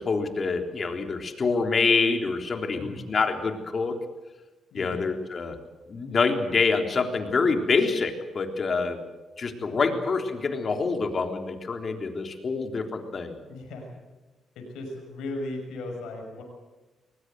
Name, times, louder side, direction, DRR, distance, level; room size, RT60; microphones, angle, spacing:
voice 1, 0.0-4.0 4.7-5.5 5.9-9.0 9.4-13.4, left 4 dB, 45° left, 5 dB, 3.6 m, -26 dB
voice 2, 2.7-3.1 4.7-5.1 9.7-10.0 13.5-13.9 14.6-16.4, left 2 dB, 85° left, 2 dB, 6.0 m, -37 dB
21.5 x 20.0 x 8.0 m, 1.2 s
cardioid pair, 65°, 0 cm